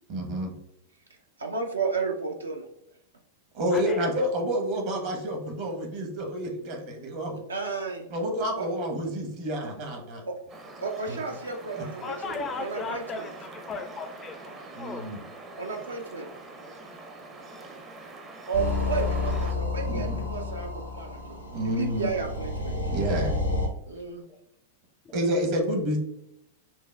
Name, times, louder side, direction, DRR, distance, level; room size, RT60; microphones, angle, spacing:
voice 1, 0.1-0.5 3.5-7.4 8.1-10.2 11.1-11.2 11.8-11.9 14.7-15.2 19.9-20.2 21.5-22.1 22.8-23.3 25.1-26.0, equal, 45° right, 3 dB, 0.9 m, -29 dB
voice 2, 1.4-2.7 7.5-8.1 8.6-8.7 10.2-10.3 10.8-13.2 15.6-16.3 18.5-22.8 23.9-24.2, right 4 dB, 75° right, 2 dB, 0.5 m, -32 dB
sound 1, 10.5-19.5, right 2 dB, 25° right, 0.6 m, -44 dB
voice 3, 12.0-15.1 24.3-24.4 25.1-25.2, left 4 dB, 25° left, 8 dB, 0.3 m, -36 dB
sound 2, 18.5-23.7, left 2 dB, 85° left, 0.7 m, -30 dB
5.7 x 2.1 x 2.2 m, 0.77 s
figure-of-eight pair, 95°, 0 cm